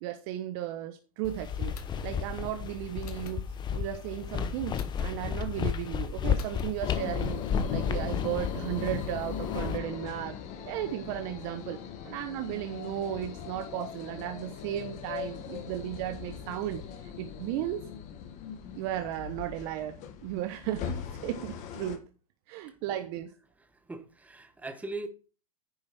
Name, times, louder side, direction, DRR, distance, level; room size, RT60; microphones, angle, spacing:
voice 1, 0.0-1.7 2.0-3.4 3.7-7.4 7.7-10.4 10.7-11.8 12.0-16.8 17.2-17.8 18.7-20.0 20.2-22.0 22.5-23.3, right 12 dB, 50° right, 1.0 m, -35 dB
sound 1, 1.2-9.8, left 7 dB, 25° left, 0.9 m, -33 dB
sound 2, 1.7-2.1 3.0-3.4 4.7-5.1 6.4-6.7, left 7 dB, 80° left, 1.8 m, -49 dB
sound 3, 6.8-22.0, left 8 dB, 40° left, 1.8 m, -39 dB
voice 2, 23.9-25.1, right 2 dB, 10° right, 1.3 m, -39 dB
10.0 x 6.6 x 4.2 m
hypercardioid pair, 115°, 19 cm